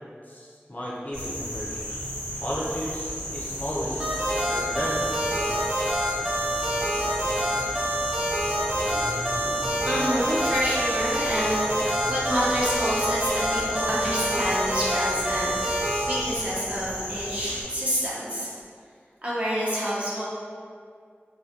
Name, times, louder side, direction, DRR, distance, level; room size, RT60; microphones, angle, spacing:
voice 1, 0.2-1.8 2.4-4.1 4.5-5.5, equal, 40° left, -7 dB, 0.5 m, -33 dB
sound 1, 1.1-17.6, equal, 80° right, 1.0 m, -34 dB
sound 2, 4.0-16.0, right 1 dB, 15° right, 1.0 m, -27 dB
voice 2, 9.9-18.5 19.2-20.3, equal, 30° right, -8 dB, 0.7 m, -28 dB
2.3 x 2.1 x 2.8 m, 2.1 s
wide cardioid pair, 45°, 4 cm